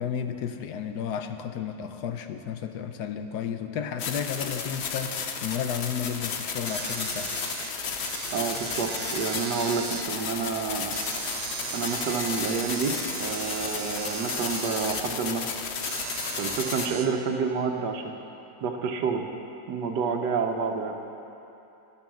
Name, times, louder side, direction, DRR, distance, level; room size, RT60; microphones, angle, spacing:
voice 1, 0.0-7.3, left 8 dB, 80° left, 8 dB, 1.2 m, -32 dB
sound 1, 4.0-16.9, left 6 dB, 55° left, 0.8 m, -33 dB
sound 2, 6.6-17.1, right 6 dB, 55° right, 0.9 m, -37 dB
voice 2, 8.3-10.9 11.7-15.7 16.4-18.1 18.6-19.2 19.7-21.0, right 5 dB, 80° right, 4 dB, 1.5 m, -29 dB
13.0 x 10.5 x 6.2 m, 2.9 s
omnidirectional pair, 1.8 m